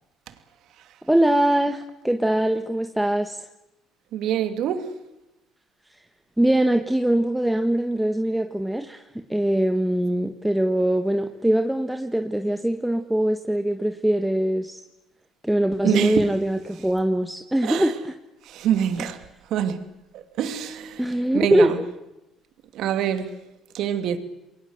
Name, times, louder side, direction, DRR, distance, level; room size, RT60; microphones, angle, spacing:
voice 1, 1.1-3.4 6.4-9.0 9.3-14.8 15.4-18.1 21.0-21.7, right 1 dB, 5° right, 1.7 m, -22 dB
voice 2, 4.1-4.9 15.8-16.3 17.6-17.9 18.4-19.2 19.5-19.8 20.1-21.1 21.3-21.8 22.7-23.3 23.7-24.2, right 9 dB, 70° right, 2.6 m, -25 dB
28.5 x 22.5 x 8.1 m
supercardioid pair, 85°, 0 cm